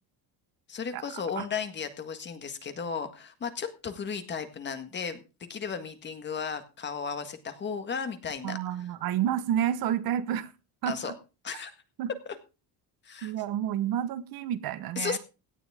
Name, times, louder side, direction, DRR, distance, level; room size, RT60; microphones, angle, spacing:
voice 1, 0.7-5.2 5.5-8.6 10.9-11.1 11.4-11.7 13.0-13.3 15.0-15.2, left 6 dB, 25° left, 8 dB, 1.7 m, -34 dB
voice 2, 8.4-10.5 10.8-11.1 12.0-12.1 13.2-15.2, right 10 dB, 60° right, 14 dB, 1.2 m, -30 dB
17.5 x 11.0 x 3.6 m, 0.31 s
cardioid pair, 180°, 41 cm